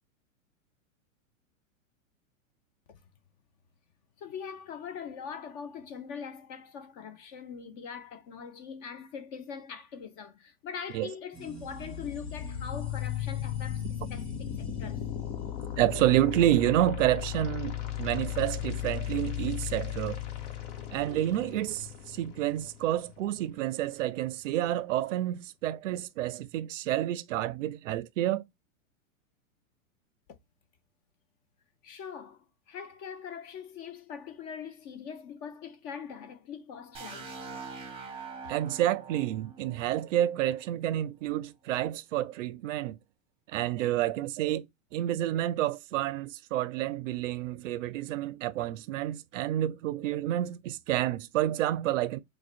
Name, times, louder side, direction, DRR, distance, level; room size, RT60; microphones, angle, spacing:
voice 1, 4.2-15.1 18.2-18.5 30.3-30.4 31.8-37.4, left 7 dB, 35° left, 0.6 m, -42 dB
sound 1, 11.3-16.6, right 2 dB, ahead, 1.7 m, -48 dB
sound 2, 11.6-23.6, left 12 dB, 60° left, 1.2 m, -36 dB
voice 2, 15.8-20.2 20.9-28.4 38.5-43.0 43.5-44.7 44.9-52.2, right 13 dB, 65° right, 0.5 m, -29 dB
sound 3, 36.9-40.8, right 5 dB, 15° right, 0.8 m, -44 dB
4.8 x 2.2 x 2.4 m
hypercardioid pair, 135°, 42 cm